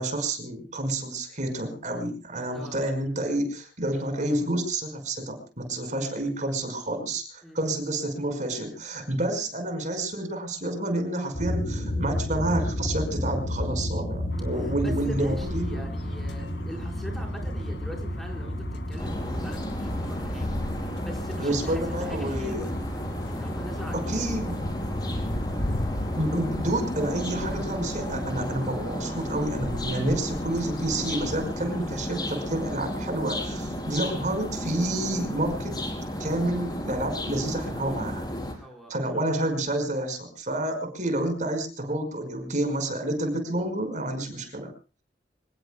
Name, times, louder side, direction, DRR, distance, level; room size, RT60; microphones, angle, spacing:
voice 1, 0.0-15.7 21.4-22.7 23.9-24.6 26.2-35.8 36.2-38.2 38.9-44.7, right 1 dB, 45° right, 6 dB, 5.2 m, -29 dB
voice 2, 2.5-2.8 7.4-7.7 14.8-20.5 20.7-22.7 23.3-24.3 38.5-38.9, equal, ahead, 1 dB, 4.8 m, -41 dB
sound 1, 11.3-27.3, left 1 dB, 45° left, 7.2 m, -33 dB
sound 2, 14.3-31.4, left 1 dB, 80° left, 2.3 m, -38 dB
sound 3, 19.0-38.5, equal, 25° left, 4.4 m, -33 dB
26.5 x 20.5 x 2.3 m, 0.35 s
head